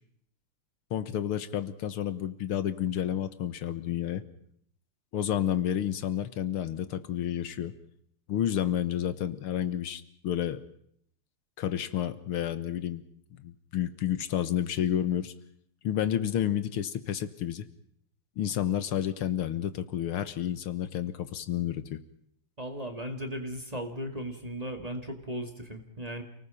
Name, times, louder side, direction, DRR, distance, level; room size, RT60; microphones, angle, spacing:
voice 1, 0.9-4.2 5.1-7.7 8.3-10.6 11.6-13.0 13.3-15.3 15.8-17.7 18.4-22.0, left 10 dB, 75° left, 12 dB, 2.0 m, -30 dB
voice 2, 22.6-26.2, equal, 15° right, 5 dB, 2.2 m, -36 dB
29.0 x 19.5 x 5.7 m, 0.68 s
omnidirectional pair, 2.4 m